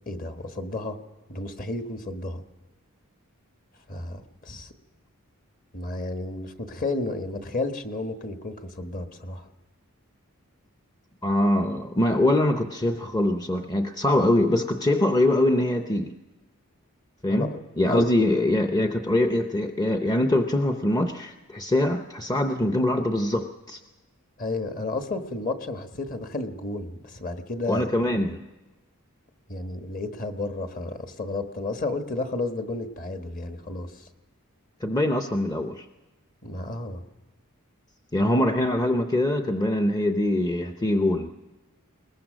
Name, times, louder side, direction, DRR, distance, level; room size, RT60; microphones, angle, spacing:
voice 1, 0.1-1.0 1.3-2.4 3.9-4.7 5.7-9.5 17.3-17.6 17.9-18.1 24.4-27.9 29.5-34.1 36.4-37.0, left 2 dB, 40° left, 7 dB, 1.3 m, -32 dB
voice 2, 11.2-16.2 17.2-23.8 27.7-28.4 34.8-35.9 38.1-41.3, left 1 dB, 15° left, 6 dB, 0.7 m, -23 dB
21.5 x 20.0 x 6.3 m, 1.1 s
head